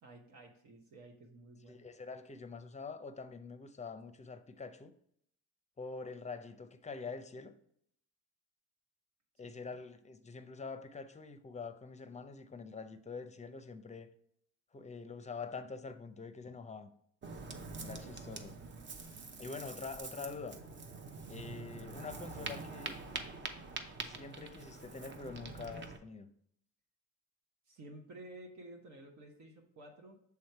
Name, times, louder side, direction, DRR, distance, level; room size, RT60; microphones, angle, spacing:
voice 1, 0.0-1.9 9.4-9.6 27.7-30.2, right 1 dB, 70° right, 1.1 m, -53 dB
voice 2, 1.7-4.9 5.8-7.6 9.4-14.1 14.7-16.9 17.8-18.6 19.4-20.6 21.3-23.0 24.0-26.3, left 4 dB, 25° left, 0.6 m, -45 dB
Ocean, 17.2-26.0, right 3 dB, 40° right, 0.8 m, -45 dB
6.4 x 3.5 x 4.5 m
cardioid pair, 90°, 30 cm